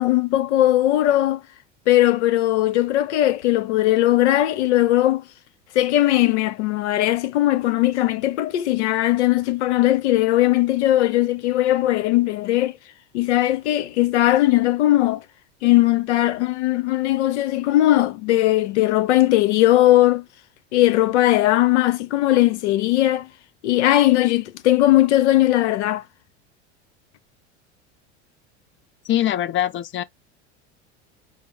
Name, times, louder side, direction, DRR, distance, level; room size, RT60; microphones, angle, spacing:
voice 1, 0.0-1.4 1.9-5.2 5.7-12.7 13.1-15.2 15.6-20.3 20.7-23.3 23.6-26.0, left 15 dB, 75° left, 0.8 m, -19 dB
voice 2, 29.0-30.0, left 12 dB, 35° left, 0.5 m, -22 dB
5.3 x 2.0 x 4.6 m
hypercardioid pair, 80°, 35 cm